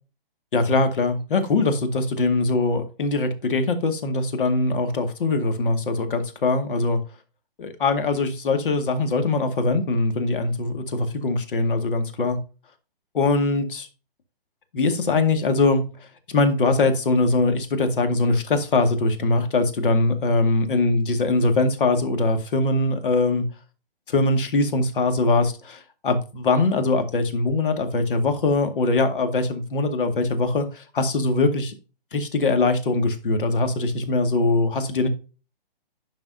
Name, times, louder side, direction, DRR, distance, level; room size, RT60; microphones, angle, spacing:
voice 1, 0.5-7.0 7.6-12.4 13.1-13.9 14.7-15.8 16.3-23.4 24.1-31.7 32.1-35.1, left 3 dB, 60° left, 2.0 m, -22 dB
10.5 x 6.0 x 2.7 m
hypercardioid pair, 170°, 29 cm